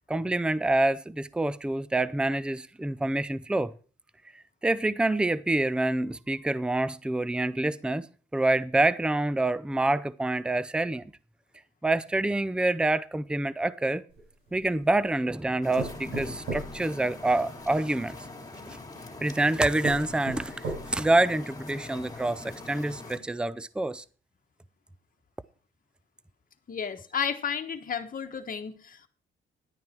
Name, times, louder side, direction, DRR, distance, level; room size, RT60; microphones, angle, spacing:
voice 1, 0.1-3.7 4.6-8.1 8.3-11.0 11.8-14.0 14.5-18.2 18.7-18.8 19.2-24.0, right 2 dB, 5° right, 0.5 m, -27 dB
sound 1, 14.1-15.0 15.8-17.7 18.7-18.8 19.4-19.5 19.8-21.2 21.7-21.8 22.1-22.2, right 3 dB, 90° right, 5.8 m, -37 dB
sound 2, 15.6-23.2, left 2 dB, 20° left, 3.2 m, -43 dB
voice 2, 26.7-29.1, left 7 dB, 45° left, 1.4 m, -32 dB
11.0 x 9.5 x 4.5 m
cardioid pair, 90°, 20 cm